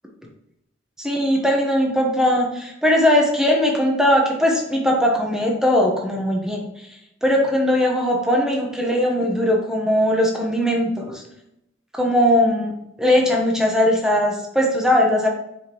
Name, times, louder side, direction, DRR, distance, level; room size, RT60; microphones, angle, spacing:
voice 1, 1.0-6.6 7.2-11.2 11.9-12.7 13.0-15.3, left 1 dB, 5° right, -1 dB, 1.2 m, -19 dB
6.6 x 5.0 x 3.1 m, 0.82 s
head